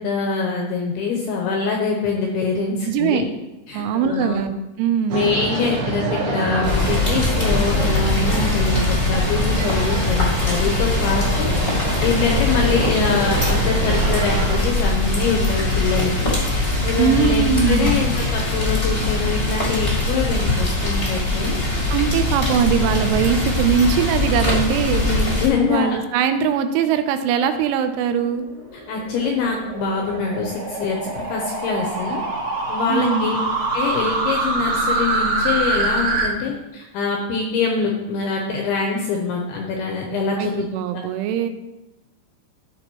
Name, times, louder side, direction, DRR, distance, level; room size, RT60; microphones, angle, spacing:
voice 1, 0.0-3.3 3.7-4.4 5.1-11.5 12.0-16.1 16.8-21.6 25.0-26.0 28.9-32.2 32.7-33.4 33.7-40.6 40.9-41.0, left 4 dB, 80° left, 0 dB, 2.3 m, -24 dB
voice 2, 2.9-3.2 3.7-5.3 17.0-18.0 21.9-25.1 25.7-28.5 32.9-33.4 40.4-41.5, right 7 dB, 90° right, 9 dB, 3.1 m, -21 dB
sound 1, 5.1-14.6, right 2 dB, 70° right, 3.1 m, -26 dB
Rain, 6.6-25.5, left 2 dB, 45° left, 0.7 m, -21 dB
sound 2, 28.2-36.3, right 3 dB, 50° right, 3.6 m, -24 dB
14.5 x 5.2 x 3.0 m, 1.0 s
omnidirectional pair, 5.4 m